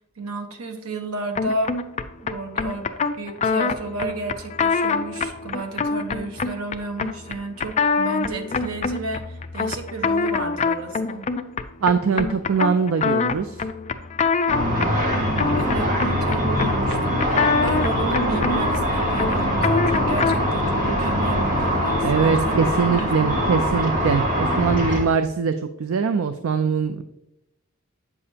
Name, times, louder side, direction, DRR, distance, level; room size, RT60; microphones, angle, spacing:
voice 1, 0.2-1.7 2.2-2.9 3.2-11.3 15.1-22.6 22.9-23.4, right 3 dB, 90° right, 5 dB, 1.2 m, -32 dB
sound 1, 1.3-20.5, left 4 dB, 30° left, 0.4 m, -25 dB
voice 2, 11.8-13.6 22.0-25.5 25.8-27.0, right 5 dB, 70° right, 10 dB, 0.4 m, -22 dB
Car / Traffic noise roadway noise / Engine, 14.5-25.0, equal, 40° right, 1.8 m, -23 dB
8.5 x 6.9 x 2.8 m, 0.88 s
head